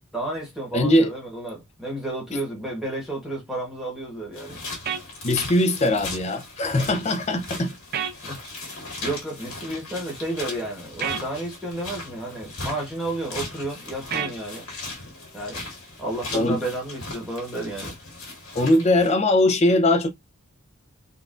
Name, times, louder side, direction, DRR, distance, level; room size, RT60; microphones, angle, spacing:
voice 1, 0.1-4.6 8.2-8.4 9.0-14.6 15.3-15.6 16.0-17.9 18.2-18.3, right 1 dB, ahead, 1.2 m, -32 dB
voice 2, 0.7-1.1 2.3-2.4 5.2-7.7 16.3-16.6 18.5-20.1, left 1 dB, 30° left, 0.5 m, -20 dB
sound 1, 4.3-19.2, left 2 dB, 65° left, 1.6 m, -38 dB
sound 2, 4.9-5.0 7.9-8.2 11.0-11.2 14.1-14.4, right 8 dB, 45° right, 0.4 m, -28 dB
3.9 x 2.4 x 2.5 m
head